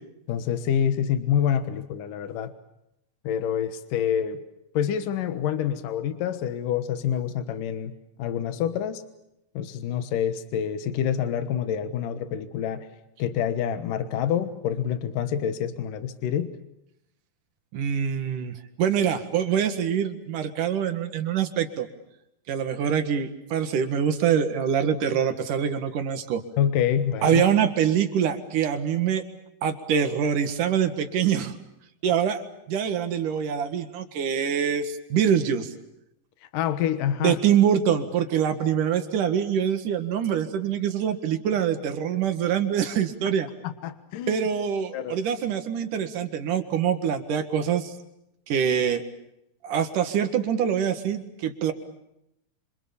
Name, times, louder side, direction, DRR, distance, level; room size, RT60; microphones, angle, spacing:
voice 1, 0.3-2.5 3.2-4.4 4.7-7.9 8.2-9.0 9.5-12.9 13.2-16.6 26.6-27.4 36.5-37.4 43.6-44.5 44.9-45.2, left 9 dB, 75° left, 10 dB, 2.9 m, -27 dB
voice 2, 17.7-21.9 22.5-26.4 27.2-29.2 29.6-31.5 32.0-32.4 32.7-35.7 37.2-43.5 44.3-47.9 48.5-49.0 49.6-51.7, right 8 dB, 70° right, 8 dB, 3.2 m, -24 dB
26.5 x 26.5 x 7.1 m, 0.84 s
omnidirectional pair, 4.0 m